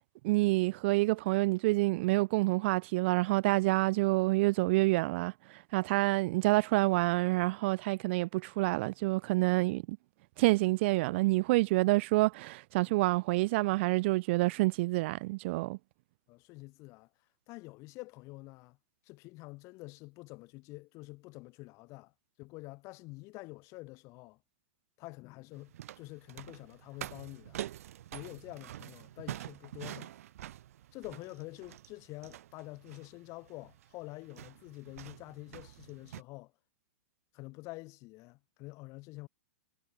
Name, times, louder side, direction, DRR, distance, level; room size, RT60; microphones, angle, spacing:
voice 1, 0.2-10.0 10.4-15.8, right 21 dB, 50° right, 0.4 m, -28 dB
voice 2, 16.3-17.1 17.5-18.8 19.1-22.1 22.4-24.4 25.0-27.6 28.1-30.1 30.9-36.5 37.3-39.3, left 23 dB, 40° left, 2.1 m, -47 dB
sound 1, 25.5-36.2, right 12 dB, 70° right, 0.9 m, -46 dB
hypercardioid pair, 130°, 8 cm